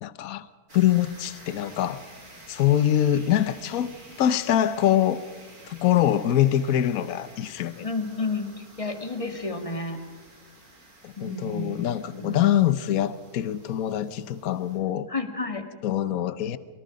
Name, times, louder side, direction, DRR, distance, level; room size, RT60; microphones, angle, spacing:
voice 1, 0.0-0.5 0.7-2.0 2.5-5.2 5.7-7.9 11.0-15.1 15.8-16.6, left 11 dB, 70° left, 1.3 m, -24 dB
sound 1, 0.7-14.8, right 1 dB, 70° right, 4.7 m, -50 dB
voice 2, 7.8-10.0 11.2-11.8 12.1-12.4 15.1-15.6, left 3 dB, 20° left, 2.0 m, -31 dB
24.5 x 24.0 x 5.2 m
omnidirectional pair, 1.6 m